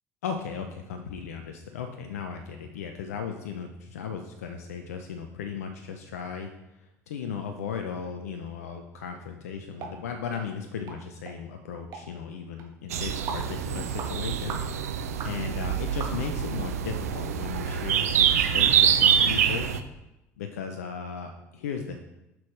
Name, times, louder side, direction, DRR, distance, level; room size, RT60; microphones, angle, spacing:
voice 1, 0.2-6.5 6.8-19.7 20.4-22.0, left 6 dB, 85° left, 5 dB, 0.6 m, -36 dB
sound 1, 9.8-10.0 10.3-10.4 10.9-11.0 11.3-11.4 11.9-12.1 12.6-12.7 13.3-13.5 14.0-14.1 14.5-14.7 15.2-15.4 16.0-16.4 16.9-17.0 17.5-17.6 18.1-18.2, right 5 dB, 50° right, 1.5 m, -38 dB
sound 2, 12.9-19.8, right 8 dB, 85° right, 0.5 m, -25 dB
8.2 x 6.1 x 3.3 m, 0.93 s
hypercardioid pair, 65°, 8 cm